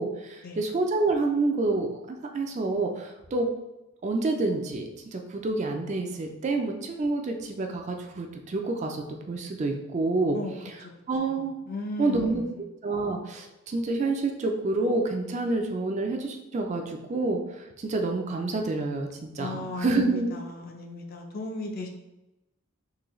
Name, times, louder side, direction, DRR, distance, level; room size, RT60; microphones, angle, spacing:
voice 1, 0.0-3.5 4.0-10.4 11.1-11.5 12.0-12.4 12.8-20.3, right 3 dB, 35° right, 3 dB, 0.3 m, -28 dB
voice 2, 11.7-12.6 19.4-21.9, left 2 dB, 45° left, 2 dB, 0.5 m, -36 dB
3.8 x 2.7 x 3.0 m, 0.95 s
head